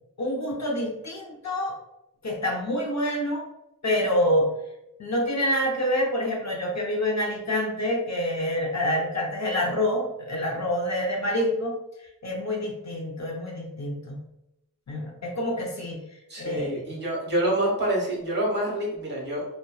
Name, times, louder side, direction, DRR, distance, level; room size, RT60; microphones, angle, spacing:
voice 1, 0.2-1.8 2.2-3.5 3.8-4.5 5.0-14.2 14.9-16.0 16.4-16.8, left 1 dB, 50° left, -1 dB, 0.5 m, -27 dB
voice 2, 16.3-19.5, right 1 dB, 30° right, -4 dB, 1.1 m, -27 dB
2.6 x 2.1 x 2.2 m, 0.87 s
wide cardioid pair, 70°, 34 cm